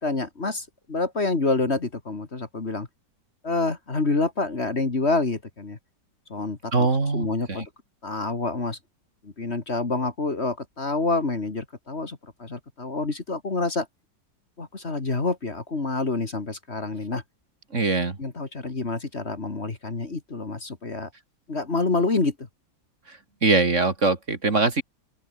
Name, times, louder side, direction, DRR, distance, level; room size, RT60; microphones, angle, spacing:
voice 1, 0.0-2.9 3.4-5.8 6.3-6.9 7.1-7.6 8.0-8.8 9.2-13.9 14.6-17.2 18.2-21.1 21.5-22.3, left 3 dB, 40° left, 2.5 m, -27 dB
voice 2, 6.7-7.7 17.7-18.2 23.1-24.8, right 3 dB, 45° right, 2.9 m, -23 dB
open air
omnidirectional pair, 1.8 m